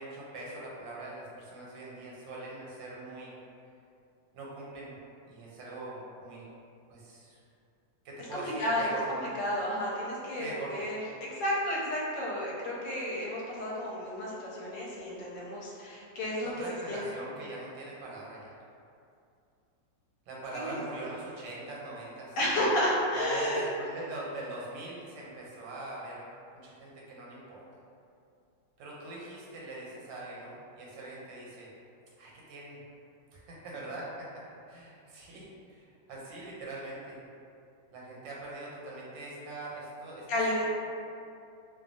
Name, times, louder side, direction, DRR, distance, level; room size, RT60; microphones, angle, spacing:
voice 1, 0.0-3.3 4.3-4.9 5.3-6.4 6.9-7.4 8.0-9.3 10.4-10.8 16.4-18.5 20.3-22.4 23.1-26.2 26.5-27.6 28.8-31.7 32.2-32.8 33.3-34.1 34.7-37.2 37.9-40.3 40.6-40.7, right 2 dB, 85° right, -5 dB, 1.4 m, -42 dB
voice 2, 8.2-17.0 20.5-20.8 22.4-23.6 40.3-40.6, left 1 dB, 80° left, -5 dB, 1.3 m, -32 dB
3.0 x 2.2 x 2.5 m, 2.5 s
omnidirectional pair, 2.0 m